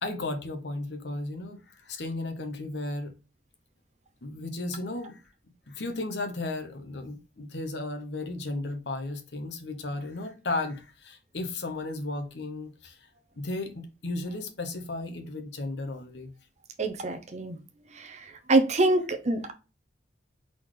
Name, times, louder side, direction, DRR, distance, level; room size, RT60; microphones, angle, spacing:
voice 1, 0.0-3.1 4.2-5.2 5.7-13.0 13.4-16.3, left 2 dB, 70° left, 0.9 m, -34 dB
voice 2, 16.8-17.6 18.1-18.2 18.5-19.5, right 2 dB, 40° right, 0.6 m, -24 dB
4.2 x 3.8 x 3.1 m
head